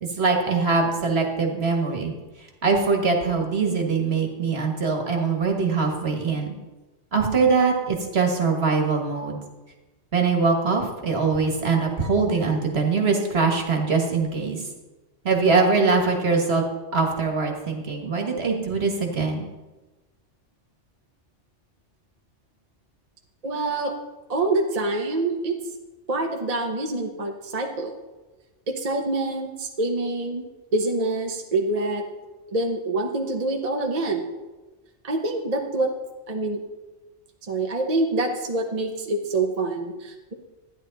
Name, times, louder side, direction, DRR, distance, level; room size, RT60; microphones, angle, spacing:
voice 1, 0.0-2.1 2.6-6.5 7.1-9.4 10.1-14.6 15.2-16.6 16.9-19.5, right 4 dB, 55° right, 2 dB, 1.8 m, -22 dB
voice 2, 23.4-24.0 24.3-25.6 26.1-27.9 28.7-30.4 30.7-32.0 32.5-34.2 35.0-35.9 36.3-36.6 37.5-40.3, right 2 dB, 35° right, 2 dB, 0.9 m, -26 dB
12.5 x 10.0 x 4.0 m, 1.2 s
omnidirectional pair, 1.3 m